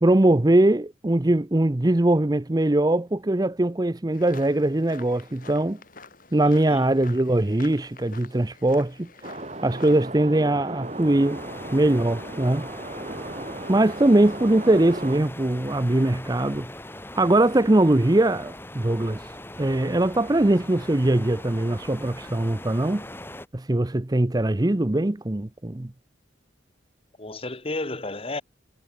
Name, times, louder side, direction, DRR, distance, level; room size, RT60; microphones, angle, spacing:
voice 1, 0.0-5.8 6.3-9.1 9.6-11.4 11.7-12.7 13.7-16.7 17.1-19.2 19.6-23.1 23.5-25.9, right 1 dB, 20° right, 0.6 m, -21 dB
sound 1, 4.1-10.0, left 4 dB, 50° left, 5.5 m, -47 dB
voice 2, 6.4-6.9 14.0-14.1 27.2-28.4, left 2 dB, 30° left, 1.5 m, -33 dB
sound 2, 9.2-15.2, right 2 dB, 35° right, 6.3 m, -36 dB
sound 3, 10.8-23.5, left 1 dB, 10° left, 7.4 m, -41 dB
head